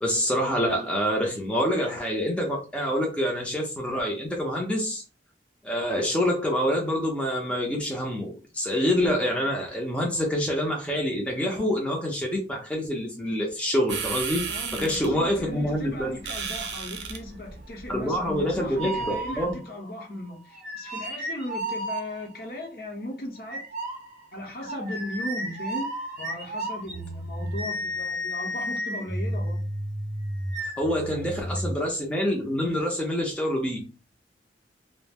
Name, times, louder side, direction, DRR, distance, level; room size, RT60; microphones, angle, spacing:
voice 1, 0.0-5.0 5.6-16.1 17.9-19.6 30.8-33.9, equal, 5° left, 0.5 m, -26 dB
sound 1, 13.9-19.5, right 6 dB, 80° right, 0.5 m, -36 dB
voice 2, 14.5-23.6 24.3-25.9 26.2-29.6 31.1-31.3, left 1 dB, 55° left, 0.8 m, -37 dB
sound 2, 18.7-19.8 20.5-22.5 23.5-31.7, right 1 dB, 40° right, 0.7 m, -32 dB
2.4 x 2.0 x 3.4 m
head